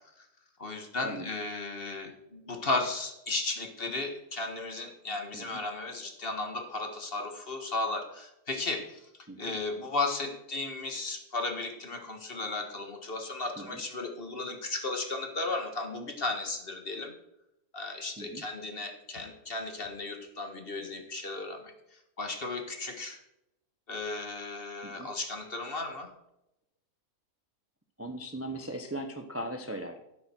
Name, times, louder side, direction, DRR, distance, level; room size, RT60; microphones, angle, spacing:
voice 1, 0.6-9.1 9.4-17.1 17.7-23.2 23.9-26.1, left 3 dB, 40° left, 4 dB, 1.7 m, -35 dB
voice 2, 28.0-30.0, right 1 dB, 10° right, 5 dB, 0.7 m, -39 dB
12.5 x 9.4 x 4.5 m, 0.85 s
omnidirectional pair, 1.6 m